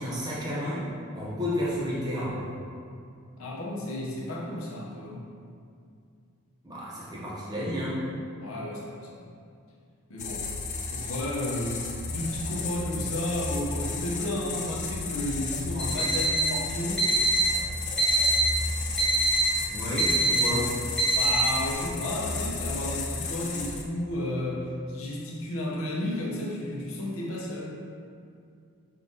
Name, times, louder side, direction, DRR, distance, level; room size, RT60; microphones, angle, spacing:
voice 1, 0.0-2.4 6.6-8.0 19.7-20.7, equal, 20° right, -8 dB, 0.7 m, -31 dB
voice 2, 3.4-5.3 8.4-9.1 10.1-10.5 10.9-17.1 20.5-20.6 21.1-27.8, left 1 dB, 70° left, -4 dB, 0.7 m, -32 dB
sound 1, 10.2-23.8, left 3 dB, 35° left, 0.4 m, -33 dB
Alarm, 15.8-16.5 17.0-17.5 18.0-18.5 19.0-19.5 20.0-20.5 21.0-21.5, right 2 dB, ahead, 1.0 m, -23 dB
5.3 x 2.4 x 3.9 m, 2.4 s
head